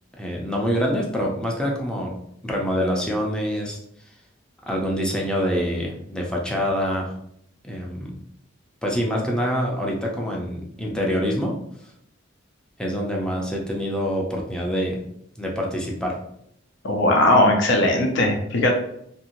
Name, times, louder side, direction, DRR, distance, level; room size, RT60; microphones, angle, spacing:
voice 1, 0.2-2.1 2.4-3.8 4.7-7.1 7.6-8.2 8.8-11.6 12.8-15.0 15.4-16.2, equal, 5° left, -1 dB, 0.5 m, -25 dB
voice 2, 16.8-18.7, left 1 dB, 65° left, 2 dB, 0.6 m, -18 dB
2.8 x 2.6 x 2.9 m, 0.72 s
head